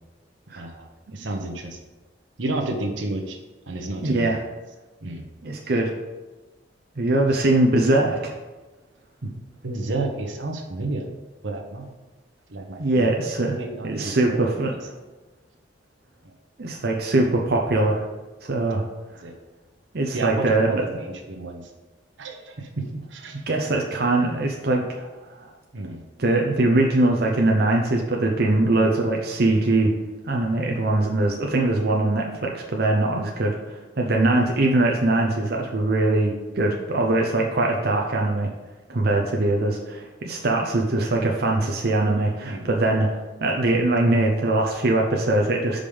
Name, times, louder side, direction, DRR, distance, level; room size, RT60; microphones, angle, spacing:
voice 1, 0.6-1.8 2.4-3.4 3.7-4.3 5.0-5.2 7.3-7.4 9.2-9.3 9.6-11.0 11.4-11.9 12.5-13.1 13.5-14.8 18.7-18.8 19.2-19.3 20.1-21.6 22.2-23.4 25.7-26.0 42.4-42.7, right 2 dB, 85° right, 2 dB, 1.0 m, -31 dB
voice 2, 4.0-4.4 5.4-5.9 7.0-8.3 12.8-14.7 16.6-18.0 18.4-18.8 19.9-20.8 23.5-25.1 26.2-29.9 30.3-38.5 38.9-43.1 43.4-45.8, right 2 dB, 55° right, 0 dB, 0.7 m, -22 dB
5.1 x 5.1 x 5.4 m, 1.2 s
head